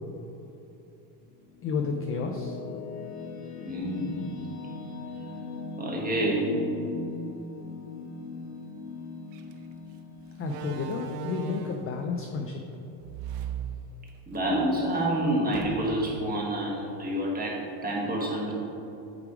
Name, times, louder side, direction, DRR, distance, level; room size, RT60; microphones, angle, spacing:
sound 1, 1.2-12.5, left 4 dB, 50° left, 1.4 m, -40 dB
voice 1, 1.6-2.6 10.4-12.6, left 5 dB, 30° left, 3 dB, 0.4 m, -31 dB
voice 2, 3.6-4.2 5.8-6.6 14.3-18.5, right 1 dB, 20° right, -3 dB, 1.4 m, -28 dB
Slam, 9.3-9.5 10.4-12.0 13.0-14.4 14.8-14.9 15.5-16.1, right 7 dB, 75° right, 0.7 m, -37 dB
8.4 x 3.4 x 4.7 m, 2.9 s
supercardioid pair, 115°, 48 cm